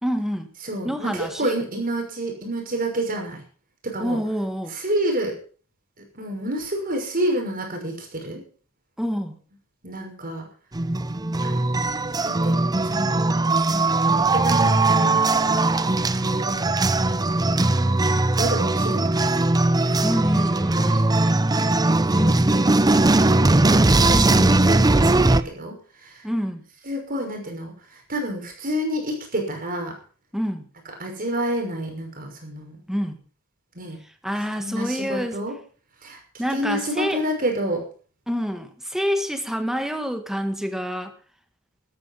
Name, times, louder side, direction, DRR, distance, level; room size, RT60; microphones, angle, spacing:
voice 1, 0.0-0.5 0.8-1.6 4.0-4.8 9.0-9.4 20.0-21.1 22.1-22.5 24.1-24.5 26.2-26.7 30.3-30.7 32.9-33.2 34.2-35.4 36.4-37.2 38.3-41.1, equal, ahead, 7 dB, 1.6 m, -27 dB
voice 2, 0.6-3.4 3.8-4.2 4.7-5.4 6.1-8.4 9.8-10.5 11.4-13.3 13.7-15.5 16.2-16.7 18.1-19.5 19.9-20.0 21.3-21.4 21.9-22.4 22.8-23.6 23.9-24.3 24.7-26.2 26.8-29.9 31.0-32.8 33.7-34.0 34.6-35.5 36.0-36.2 36.5-37.8, right 1 dB, 45° right, 2 dB, 5.8 m, -29 dB
sound 1, 10.7-25.4, right 2 dB, 20° right, 0.6 m, -19 dB
13.0 x 12.5 x 5.6 m, 0.40 s
head